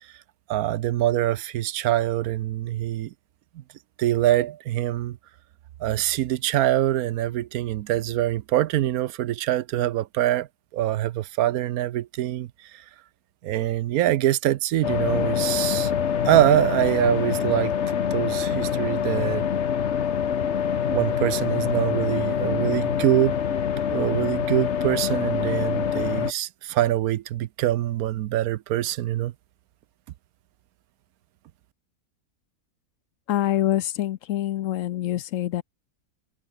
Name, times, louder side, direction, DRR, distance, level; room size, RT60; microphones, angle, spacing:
voice 1, 0.5-3.1 4.0-5.2 5.8-10.5 10.7-12.8 13.4-15.9 16.2-19.5 20.9-23.4 23.9-29.3, right 13 dB, 80° right, 1.1 m, -24 dB
sound 1, 14.8-26.3, left 8 dB, 50° left, 1.3 m, -25 dB
voice 2, 33.3-35.6, left 13 dB, 70° left, 0.9 m, -25 dB
omnidirectional pair, 1.6 m